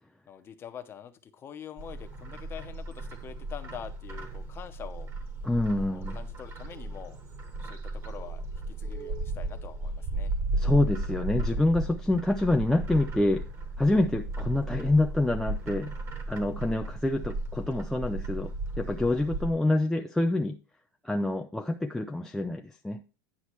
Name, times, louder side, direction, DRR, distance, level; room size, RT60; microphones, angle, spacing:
voice 1, 0.3-5.1 5.9-7.2 7.6-10.3, left 8 dB, 20° left, 0.9 m, -45 dB
Bird, 1.8-19.5, right 2 dB, 25° right, 1.4 m, -35 dB
voice 2, 5.4-6.2 10.5-13.5 13.8-15.9 16.3-20.6 21.0-23.0, left 2 dB, 5° left, 0.4 m, -27 dB
9.9 x 5.7 x 4.5 m
supercardioid pair, 155°, 11 cm